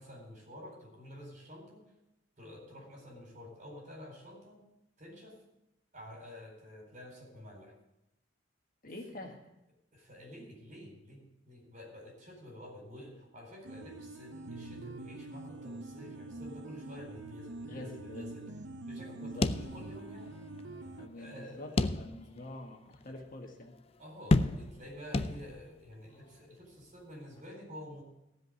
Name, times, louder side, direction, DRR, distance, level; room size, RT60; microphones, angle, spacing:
voice 1, 0.0-1.8 2.4-4.6 5.0-5.4 5.9-7.7 8.8-8.9 9.9-18.5 18.9-20.3 21.1-21.8 24.0-28.0, left 1 dB, 45° right, 0 dB, 4.3 m, -49 dB
voice 2, 8.8-9.4 17.7-18.3 19.0-19.5 21.0-23.7, left 2 dB, 50° left, 3 dB, 1.6 m, -46 dB
sound 1, 13.6-21.1, right 2 dB, 75° right, 0.8 m, -45 dB
sound 2, 19.4-20.3 20.6-20.7 21.8-22.4 22.9-23.0 24.3-24.9 25.1-25.8, left 2 dB, 30° left, 0.4 m, -30 dB
15.5 x 5.2 x 8.2 m, 0.89 s
head